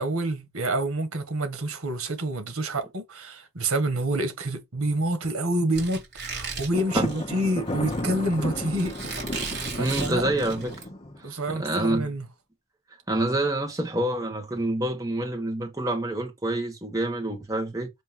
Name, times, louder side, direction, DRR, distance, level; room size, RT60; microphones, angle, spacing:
voice 1, 0.0-10.3 11.2-12.3, right 1 dB, 90° right, 1.8 m, -28 dB
Squeak, 5.7-10.8, right 4 dB, 50° right, 3.7 m, -36 dB
Thunder, 6.7-11.3, left 1 dB, 25° left, 0.8 m, -33 dB
voice 2, 9.8-10.7 11.5-12.1 13.1-17.9, right 1 dB, 15° right, 1.4 m, -27 dB
7.2 x 2.9 x 5.6 m
head